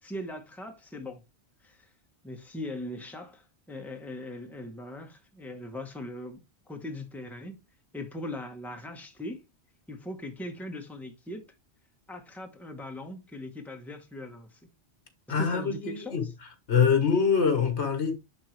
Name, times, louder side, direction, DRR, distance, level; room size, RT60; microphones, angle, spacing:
voice 1, 0.0-1.2 1.6-1.9 2.2-7.6 7.9-9.4 9.9-11.4 12.1-14.6 15.3-16.3, left 1 dB, ahead, 1.1 m, -40 dB
voice 2, 15.3-16.2 16.7-18.1, left 6 dB, 75° left, 1.7 m, -24 dB
10.5 x 3.6 x 3.2 m
omnidirectional pair, 1.1 m